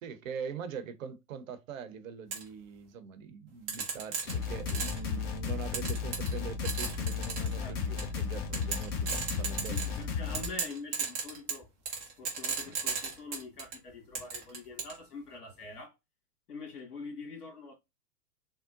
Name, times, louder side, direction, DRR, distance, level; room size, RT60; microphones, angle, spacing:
voice 1, 0.0-9.8, right 6 dB, 55° right, 0.7 m, -42 dB
sound 1, 2.3-2.4 3.7-5.1 5.7-6.4 6.7-7.5 8.0-8.2 8.5-10.0 10.3-13.8 14.2-15.0, right 6 dB, 10° right, 0.3 m, -34 dB
sound 2, 4.3-10.5, left 6 dB, 40° left, 1.0 m, -34 dB
voice 2, 9.7-11.7 12.0-15.9 16.5-17.7, left 4 dB, 70° left, 1.8 m, -45 dB
3.6 x 2.1 x 2.4 m
figure-of-eight pair, 105°, 47 cm